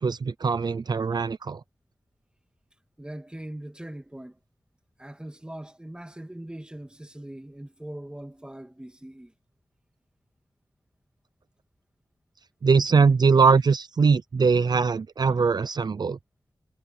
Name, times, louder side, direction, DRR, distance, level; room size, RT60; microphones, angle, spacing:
voice 1, 0.0-1.6 12.6-16.2, right 5 dB, 60° right, 0.6 m, -21 dB
voice 2, 3.0-4.4 5.0-9.3, right 1 dB, 10° right, 2.4 m, -41 dB
wide cardioid pair, 110°, 8 cm